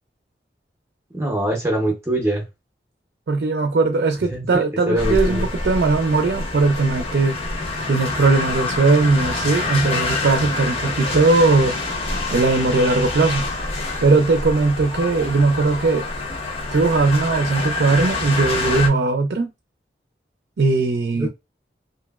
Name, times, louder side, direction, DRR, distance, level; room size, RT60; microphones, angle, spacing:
voice 1, 1.1-2.5 4.3-5.5 21.1-21.3, right 1 dB, 15° right, 0.6 m, -23 dB
voice 2, 3.3-7.4 7.9-11.7 12.3-13.5 14.0-16.1 16.7-19.5 20.6-21.3, right 3 dB, 70° right, 0.4 m, -19 dB
sound 1, 5.0-18.9, left 2 dB, 30° left, 0.7 m, -26 dB
2.9 x 2.5 x 2.3 m
head